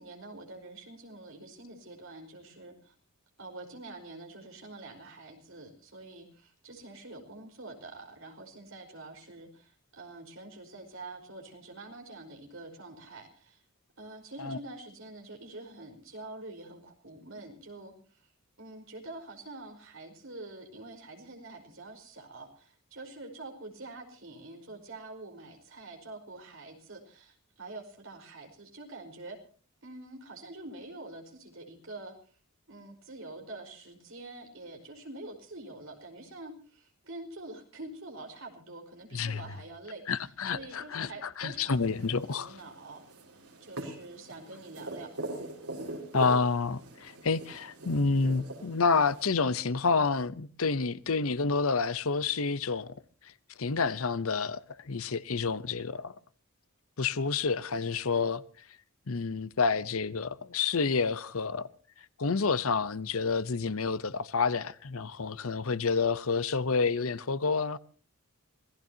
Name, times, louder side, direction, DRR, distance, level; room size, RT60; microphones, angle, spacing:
voice 1, 0.0-2.9 3.4-13.6 14.0-18.3 18.6-29.4 29.8-32.1 32.7-42.0 42.3-43.0 43.6-45.1 45.7-46.0, right 2 dB, 60° right, 4.8 m, -46 dB
voice 2, 40.1-42.5 46.1-52.9 53.6-56.1 57.0-58.4 59.1-61.7 62.2-67.8, left 4 dB, 70° left, 0.8 m, -29 dB
sound 1, 41.7-49.2, right 2 dB, 80° right, 5.4 m, -43 dB
26.0 x 18.0 x 2.9 m
head